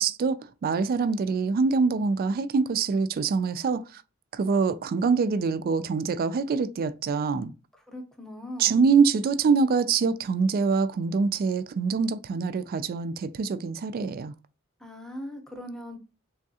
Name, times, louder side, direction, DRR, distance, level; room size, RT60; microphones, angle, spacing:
voice 1, 0.0-3.8 4.3-7.5 8.6-14.3, right 5 dB, 45° right, 0.3 m, -24 dB
voice 2, 7.7-8.9 14.8-16.0, left 1 dB, ahead, 0.7 m, -40 dB
3.5 x 3.1 x 2.7 m
head